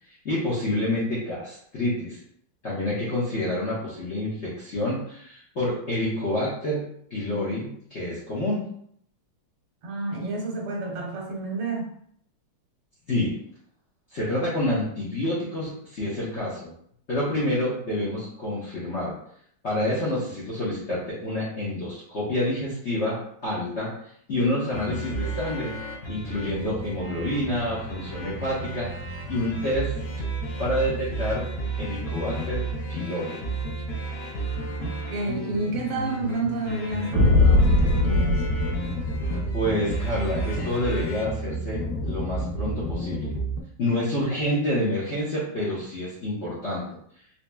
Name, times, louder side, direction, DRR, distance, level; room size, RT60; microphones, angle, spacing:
voice 1, 0.2-2.2 2.6-8.6 13.1-13.4 14.1-16.7 17.1-19.1 19.6-23.9 24.3-25.7 26.1-28.9 29.3-29.9 30.6-31.4 31.8-32.6 32.9-33.4 39.5-43.3 43.8-46.8, left 1 dB, 55° left, -8 dB, 0.8 m, -28 dB
voice 2, 9.8-11.9 34.8-38.4, right 3 dB, 90° right, 0 dB, 1.8 m, -30 dB
sound 1, 24.7-43.6, right 1 dB, 85° left, 0.7 m, -31 dB
sound 2, 37.1-39.7, left 2 dB, 55° right, 1.8 m, -20 dB
4.1 x 3.0 x 2.2 m, 0.66 s
omnidirectional pair, 2.3 m